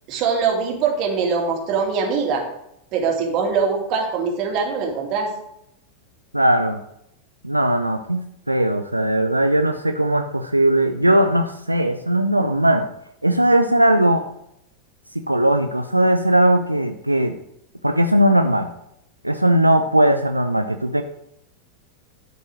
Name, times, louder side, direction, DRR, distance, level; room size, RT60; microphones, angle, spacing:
voice 1, 0.1-2.4 2.9-5.3, right 5 dB, 40° right, 1 dB, 2.5 m, -22 dB
voice 2, 6.3-6.8 7.4-12.9 13.2-14.2 15.1-17.4 17.8-18.7 19.2-21.0, right 1 dB, 85° right, 7 dB, 0.5 m, -18 dB
12.0 x 5.5 x 6.2 m, 0.80 s
figure-of-eight pair, 90°, 0 cm